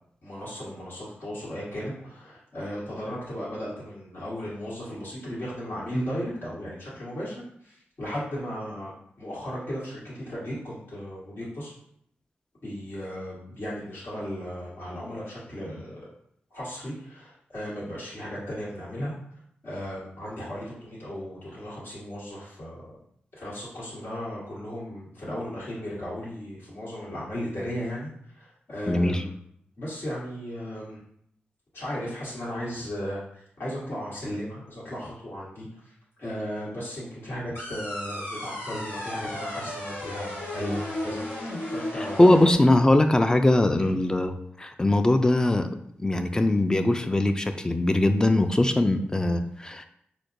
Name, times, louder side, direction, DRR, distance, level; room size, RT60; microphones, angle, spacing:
voice 1, 0.2-7.3 8.0-8.9 9.2-11.7 12.6-15.9 16.5-19.1 19.6-22.8 23.4-28.1 28.4-29.3 29.8-31.0 31.7-33.2 33.6-35.7 36.2-41.2 41.7-42.4 43.8-43.9, equal, 65° left, -8 dB, 1.4 m, -35 dB
voice 2, 28.9-29.2 41.9-45.7 46.0-49.8, left 1 dB, 20° left, 7 dB, 0.3 m, -21 dB
sound 1, 37.5-42.5, left 1 dB, 85° left, 1.1 m, -34 dB
4.4 x 2.1 x 2.6 m, 0.69 s
cardioid pair, 55°, 4 cm